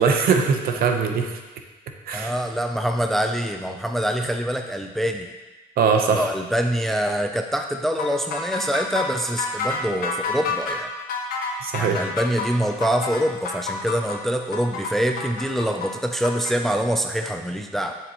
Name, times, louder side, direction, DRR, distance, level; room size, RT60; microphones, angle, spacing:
voice 1, 0.0-1.4 2.1-2.3 5.8-6.2 11.6-12.0, right 5 dB, 60° right, 4 dB, 0.9 m, -21 dB
voice 2, 2.1-5.3 6.1-10.9 11.8-17.9, equal, ahead, 5 dB, 0.4 m, -25 dB
sound 1, 8.0-16.5, left 4 dB, 60° left, 1.2 m, -29 dB
7.6 x 6.8 x 3.0 m, 1.1 s
cardioid pair, 110°, 17 cm